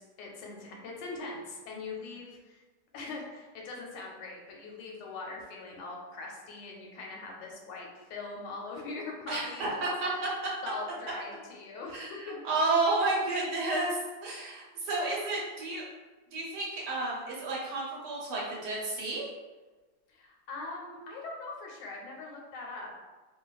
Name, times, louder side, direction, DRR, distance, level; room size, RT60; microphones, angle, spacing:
voice 1, 0.0-2.6 2.9-9.8 10.6-12.4 20.1-23.0, left 3 dB, 80° left, -1 dB, 1.2 m, -41 dB
voice 2, 9.3-10.3 11.9-15.8 16.3-19.3, right 2 dB, 70° right, -4 dB, 1.3 m, -31 dB
2.9 x 2.2 x 2.3 m, 1.2 s
omnidirectional pair, 1.9 m